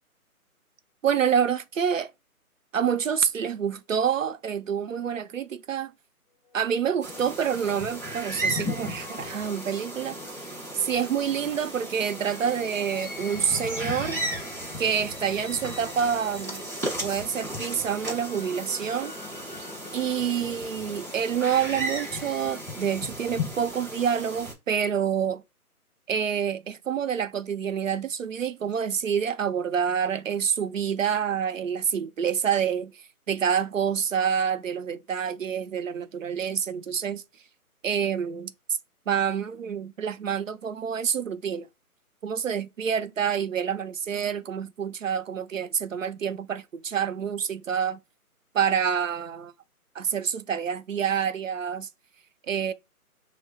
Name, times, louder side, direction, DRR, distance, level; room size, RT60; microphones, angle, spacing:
voice 1, 1.0-2.1 2.7-5.9 6.5-10.3 10.7-14.2 14.8-16.6 17.0-19.1 19.9-25.4 26.1-37.2 37.8-38.5 39.1-41.7 42.2-48.0 48.5-49.5 49.9-51.9 52.5-52.7, right 7 dB, 60° right, 0.7 m, -27 dB
sound 1, 6.5-23.3, left 3 dB, 30° left, 0.8 m, -46 dB
sound 2, 7.0-24.5, right 1 dB, 10° right, 1.0 m, -35 dB
3.6 x 2.2 x 4.0 m
hypercardioid pair, 165°, 45 cm